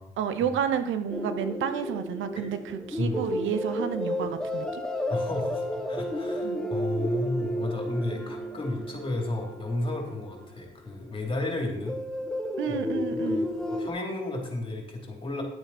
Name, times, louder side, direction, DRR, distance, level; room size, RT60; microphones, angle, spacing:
voice 1, 0.2-4.8 6.4-6.6 8.1-8.3 12.6-13.5, right 8 dB, 80° right, 11 dB, 0.8 m, -30 dB
sound 1, 1.1-10.7 11.8-13.9, equal, 5° left, 1.0 m, -32 dB
voice 2, 5.1-12.0 12.7-13.0 13.2-15.4, left 2 dB, 25° left, 1 dB, 3.1 m, -33 dB
10.0 x 9.0 x 4.2 m, 0.78 s
cardioid pair, 90°, 20 cm